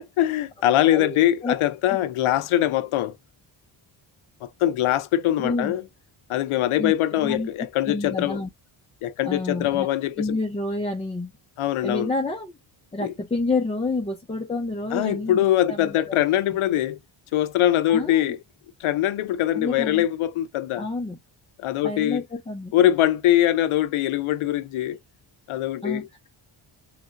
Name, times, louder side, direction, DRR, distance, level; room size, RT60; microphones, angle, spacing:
voice 1, 0.0-3.2 4.4-5.8 6.3-8.4 9.0-10.4 11.6-12.1 13.0-13.1 14.9-17.0 17.3-18.4 18.8-20.9 21.6-22.2 22.7-25.0 25.5-26.1, left 13 dB, 85° left, 0.5 m, -22 dB
voice 2, 0.8-1.2 1.4-1.5 5.4-5.7 6.8-7.5 7.9-8.5 9.2-9.9 10.2-11.3 11.8-12.5 12.9-16.2 17.9-18.3 19.5-20.1 20.8-21.2 21.8-22.7 25.8-26.3, left 3 dB, 15° left, 0.4 m, -29 dB
3.2 x 2.4 x 2.7 m
wide cardioid pair, 125°, 48 cm